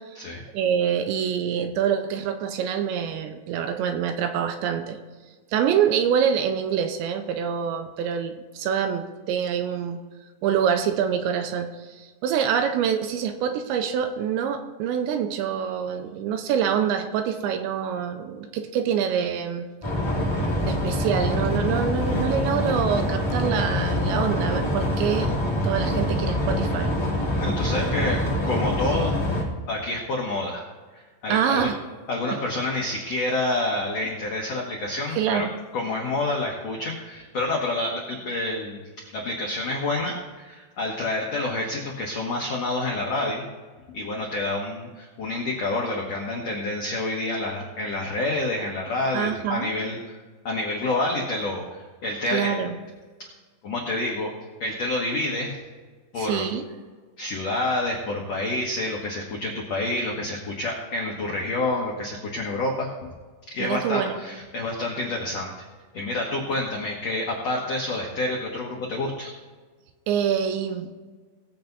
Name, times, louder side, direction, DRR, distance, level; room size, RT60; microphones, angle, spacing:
voice 1, 0.0-5.0 5.5-10.0 10.4-19.7 20.6-25.4 25.6-26.9 31.3-31.8 35.1-35.6 49.1-49.7 52.3-52.8 56.2-56.6 63.6-64.2 70.1-71.0, right 8 dB, 80° right, 7 dB, 2.9 m, -26 dB
sound 1, 19.8-29.4, left 1 dB, 30° left, 0.5 m, -25 dB
voice 2, 27.4-30.6 30.9-31.7 32.1-35.5 35.7-43.4 43.9-50.0 50.4-52.5 53.2-53.3 53.6-54.3 54.6-55.6 56.1-56.5 57.2-62.9 63.5-65.5 65.9-69.3, left 2 dB, 80° left, -2 dB, 1.4 m, -28 dB
19.0 x 8.3 x 4.0 m, 1.4 s
omnidirectional pair, 5.4 m